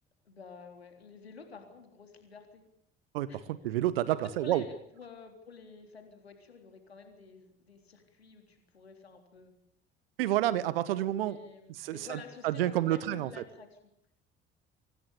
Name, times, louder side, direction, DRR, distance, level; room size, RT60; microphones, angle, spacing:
voice 1, 0.3-2.6 3.3-3.5 4.1-9.5 11.1-13.8, left 5 dB, 80° left, 5 dB, 3.6 m, -50 dB
voice 2, 3.1-4.6 10.2-11.4 11.8-13.3, right 14 dB, 65° right, 17 dB, 1.2 m, -29 dB
24.5 x 18.5 x 8.5 m, 0.73 s
figure-of-eight pair, 60°, 31 cm